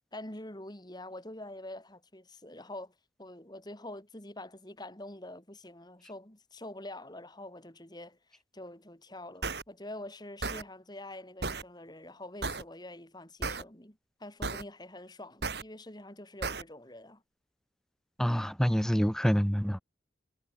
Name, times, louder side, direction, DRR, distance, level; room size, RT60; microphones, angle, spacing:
voice 1, 0.1-17.2, left 1 dB, 20° left, 3.4 m, -46 dB
sound 1, 9.4-9.6 10.4-10.6 11.4-11.6 12.4-12.6 13.4-13.6 14.4-14.6 15.4-15.6 16.4-16.6, right 3 dB, 60° right, 2.5 m, -33 dB
voice 2, 18.2-19.8, equal, 5° left, 0.7 m, -27 dB
head